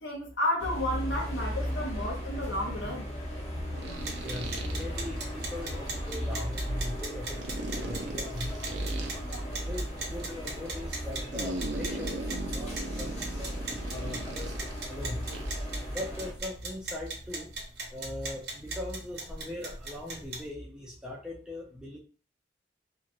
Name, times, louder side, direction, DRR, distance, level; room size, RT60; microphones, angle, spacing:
voice 1, 0.0-3.1, left 1 dB, 75° left, 0.9 m, -32 dB
sound 1, 0.6-16.3, equal, 35° left, 0.8 m, -36 dB
sound 2, 1.2-1.3 3.8-4.8 7.4-9.1 11.3-14.8 15.3-15.7, right 2 dB, 80° right, 0.5 m, -39 dB
sound 3, 3.9-20.5, right 2 dB, 55° right, 1.0 m, -41 dB
voice 2, 4.2-8.6 9.6-14.6 14.9-15.2 15.9-17.5 17.9-22.0, left 1 dB, 5° right, 0.5 m, -40 dB
2.9 x 2.4 x 2.6 m
head